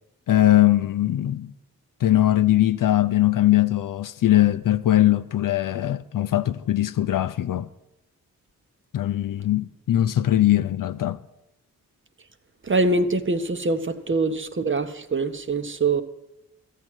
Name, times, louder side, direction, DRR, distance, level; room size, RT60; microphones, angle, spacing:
voice 1, 0.3-1.5 2.0-7.7 8.9-11.2, left 13 dB, 65° left, 0.5 m, -21 dB
voice 2, 12.6-16.0, right 3 dB, 35° right, 0.9 m, -24 dB
13.0 x 7.7 x 6.1 m
supercardioid pair, 40°, 36 cm